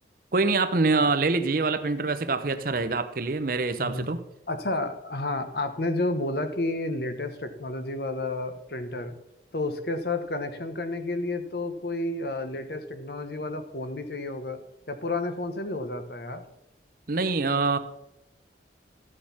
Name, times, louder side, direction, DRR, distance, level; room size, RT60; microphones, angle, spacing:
voice 1, 0.3-4.2 17.1-17.8, right 3 dB, 50° right, 11 dB, 0.7 m, -25 dB
voice 2, 3.8-4.1 4.5-9.2 9.5-14.6 14.9-16.4, left 2 dB, 55° left, 9 dB, 1.1 m, -31 dB
13.0 x 6.5 x 5.8 m, 0.89 s
head